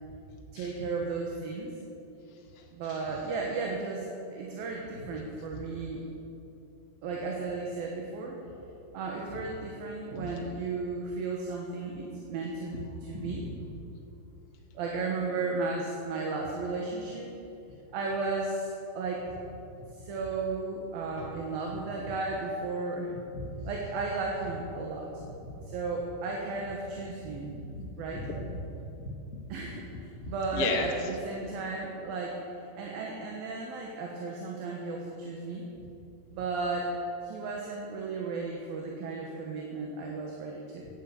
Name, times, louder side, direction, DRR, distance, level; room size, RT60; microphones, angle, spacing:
voice 1, 0.5-1.7 2.7-6.1 7.0-8.4 8.9-13.4 14.7-17.3 17.9-19.2 19.9-23.1 23.7-25.1 25.7-27.6 28.0-28.3 29.5-32.4 32.8-35.7 36.3-36.9 37.2-40.9, right 3 dB, 65° right, -1 dB, 3.0 m, -34 dB
voice 2, 2.5-3.2 5.5-5.6 10.1-10.3 13.1-13.6 23.3-23.7 25.3-25.5 27.0-29.4 29.7-29.8 30.2-31.1, left 3 dB, 60° left, 0 dB, 0.9 m, -37 dB
16.5 x 11.0 x 7.1 m, 2.8 s
omnidirectional pair, 4.9 m